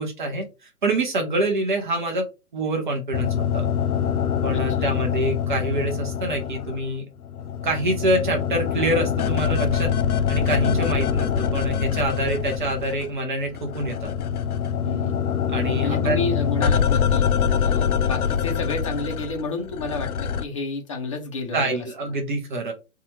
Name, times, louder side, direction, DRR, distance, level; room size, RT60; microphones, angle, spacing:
voice 1, 0.0-2.2 2.5-3.7 4.4-7.1 7.6-9.9 10.3-14.1 15.5-16.2 21.5-22.7, right 2 dB, 35° right, 2 dB, 0.6 m, -26 dB
sound 1, 3.1-6.9 7.2-13.2 13.4-20.4, left 8 dB, 80° left, 0.5 m, -24 dB
voice 2, 4.5-5.0 14.8-15.2 15.8-17.3 17.6-21.8, left 3 dB, 25° left, 2 dB, 0.5 m, -30 dB
2.6 x 2.3 x 3.0 m, 0.28 s
figure-of-eight pair, 135°, 43 cm